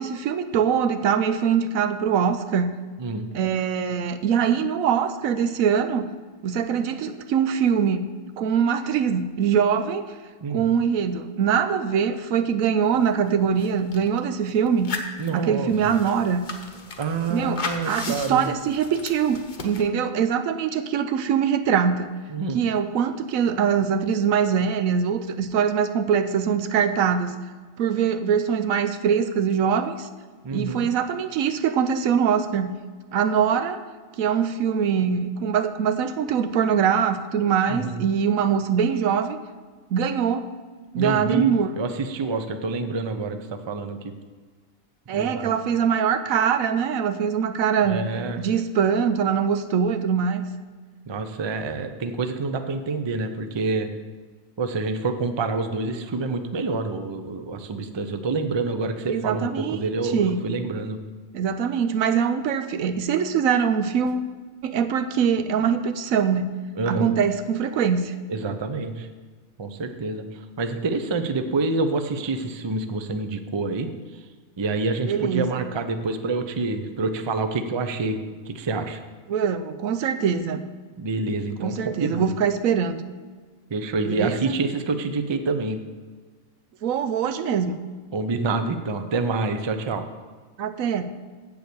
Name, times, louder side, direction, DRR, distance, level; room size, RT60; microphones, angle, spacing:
voice 1, 0.0-2.7 3.3-6.1 6.4-8.0 8.4-10.1 10.5-15.0 15.3-16.5 17.3-22.1 22.5-27.3 27.8-30.1 30.5-32.7 33.1-33.8 34.2-39.4 39.9-40.5 40.9-41.7 45.1-48.1 48.4-50.5 59.1-59.8 60.0-60.5 61.3-64.3 64.6-66.5 66.9-68.1 75.1-75.5 79.3-80.6 81.6-83.0 84.0-84.5 86.8-87.8 90.6-91.1, right 7 dB, 90° right, 10 dB, 1.1 m, -23 dB
sound 1, 13.0-13.1 13.3-14.2 14.7-19.8, left 3 dB, 40° left, 0.9 m, -36 dB
voice 2, 15.2-16.0 17.0-18.5 22.3-22.6 30.4-30.9 37.7-38.1 41.0-44.0 45.1-45.5 47.8-48.4 51.1-53.9 54.6-61.0 66.8-67.1 68.3-69.1 69.6-74.2 74.6-78.2 78.5-79.0 81.0-82.3 83.7-85.8 88.1-90.0, right 3 dB, 35° right, 8 dB, 0.4 m, -27 dB
7.9 x 7.1 x 6.9 m, 1.5 s
omnidirectional pair, 1.4 m